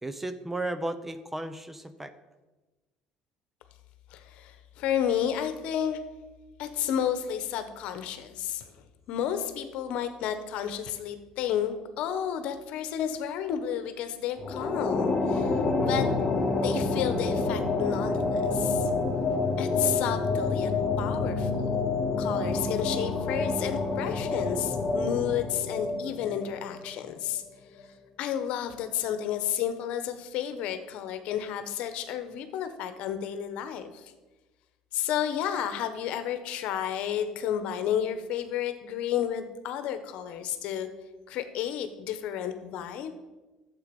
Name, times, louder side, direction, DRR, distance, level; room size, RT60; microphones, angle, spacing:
voice 1, 0.0-2.1 15.8-16.1, right 1 dB, 10° right, 11 dB, 0.8 m, -35 dB
voice 2, 4.1-6.0 6.6-8.6 9.1-15.5 15.8-16.1 16.6-18.9 19.6-20.7 21.0-21.8 22.2-27.4 28.2-34.1 34.9-40.9 41.3-43.1, left 9 dB, 70° left, 9 dB, 1.1 m, -31 dB
sound 1, 14.4-26.9, left 3 dB, 25° left, 2.4 m, -28 dB
11.5 x 7.7 x 5.4 m, 1.2 s
supercardioid pair, 95°, 2 cm